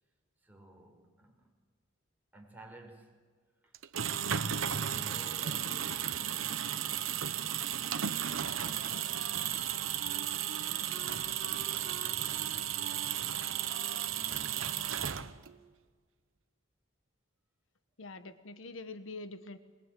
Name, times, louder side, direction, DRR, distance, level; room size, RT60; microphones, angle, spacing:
voice 1, 0.4-1.5 2.3-3.3 3.6-10.0, right 1 dB, 10° right, 1 dB, 4.8 m, -55 dB
sound 1, 3.7-15.6, right 9 dB, 85° right, 1.0 m, -34 dB
Wind instrument woodwind instrument, 8.2-15.6, right 2 dB, 60° right, 2.0 m, -49 dB
voice 2, 18.0-19.6, left 2 dB, 75° left, 11 dB, 1.2 m, -44 dB
22.5 x 22.0 x 9.2 m, 1.5 s
head